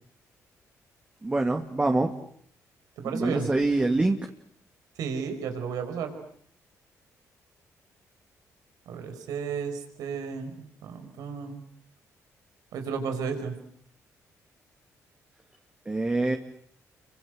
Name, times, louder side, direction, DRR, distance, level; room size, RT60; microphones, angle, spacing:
voice 1, 1.2-2.1 3.1-4.2 15.9-16.4, right 2 dB, 20° right, 3 dB, 2.5 m, -25 dB
voice 2, 3.0-3.5 5.0-6.1 8.9-10.5 10.8-11.6 12.7-13.6, right 6 dB, 80° right, 7 dB, 5.3 m, -33 dB
28.0 x 25.0 x 8.0 m, 0.64 s
cardioid pair, 85°, 6 cm